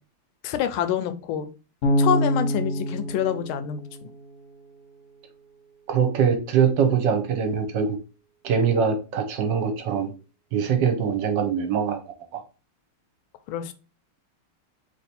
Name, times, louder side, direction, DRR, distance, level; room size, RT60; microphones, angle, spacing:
voice 1, 0.4-1.5 2.0-4.1 13.5-13.7, left 9 dB, 80° left, 10 dB, 1.3 m, -27 dB
Bass guitar, 1.8-4.8, equal, 50° left, 1.0 m, -26 dB
voice 2, 5.9-7.9 8.4-10.1 10.5-12.0 12.3-12.4, right 7 dB, 70° right, 6 dB, 1.3 m, -23 dB
3.4 x 3.0 x 4.0 m, 0.33 s
omnidirectional pair, 2.4 m